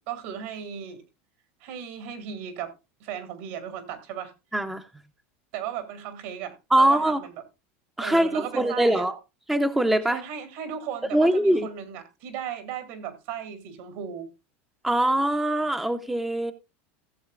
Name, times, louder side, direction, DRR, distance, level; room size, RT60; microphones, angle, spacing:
voice 1, 0.1-1.0 1.6-2.7 3.0-4.3 5.5-7.3 8.0-9.0 10.1-14.3, right 9 dB, 70° right, 2.5 m, -36 dB
voice 2, 4.5-4.9 6.7-7.2 8.0-9.2 9.5-10.2 11.1-11.7 14.8-16.5, right 1 dB, 5° right, 0.6 m, -22 dB
16.5 x 7.3 x 2.4 m
supercardioid pair, 145°, 6 cm